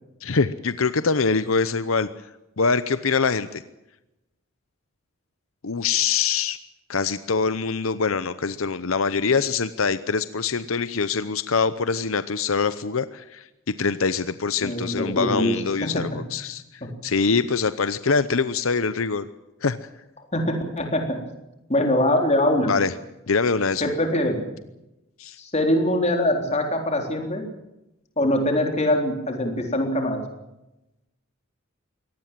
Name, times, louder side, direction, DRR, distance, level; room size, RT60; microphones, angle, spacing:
voice 1, 0.2-2.1 2.6-3.6 5.6-6.6 6.9-16.6 17.0-19.2 19.6-19.9 22.6-22.9 23.3-23.9 25.2-25.4, left 5 dB, 80° left, 13 dB, 0.8 m, -24 dB
voice 2, 14.6-15.5 15.8-16.0 16.8-16.9 20.3-21.0 21.7-22.7 23.8-24.4 25.4-27.4 28.2-30.2, left 1 dB, 30° left, 3 dB, 3.8 m, -23 dB
23.0 x 18.5 x 7.6 m, 0.95 s
head